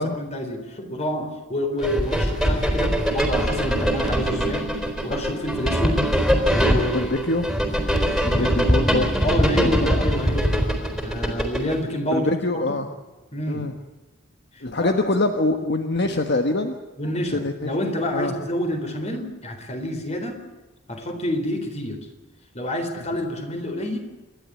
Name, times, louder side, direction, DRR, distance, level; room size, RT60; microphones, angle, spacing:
voice 1, 0.0-4.7 5.0-6.0 6.5-7.1 8.3-8.6 9.2-10.6 11.0-12.9 13.3-13.7 14.6-15.0 17.0-20.4 20.9-22.0 22.5-24.0, left 1 dB, 35° left, 5 dB, 4.0 m, -28 dB
sound 1, 1.8-11.8, equal, ahead, 3.9 m, -22 dB
voice 2, 6.9-7.5 8.2-9.1 9.6-9.7 12.1-12.9 13.5-13.7 14.6-16.7 17.3-17.7 18.1-18.3, left 2 dB, 60° left, 6 dB, 1.3 m, -24 dB
28.0 x 11.5 x 8.3 m, 1.2 s
head